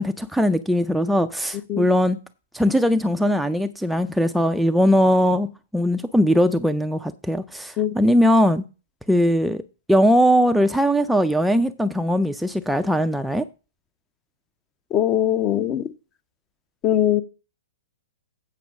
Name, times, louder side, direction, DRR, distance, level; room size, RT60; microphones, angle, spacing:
voice 1, 0.0-2.2 2.5-5.5 5.7-8.6 9.1-9.6 9.9-13.5, equal, ahead, 0.4 m, -20 dB
voice 2, 14.9-15.9 16.8-17.2, left 11 dB, 30° left, 0.7 m, -21 dB
8.5 x 5.4 x 6.3 m
hypercardioid pair, 120°, 0 cm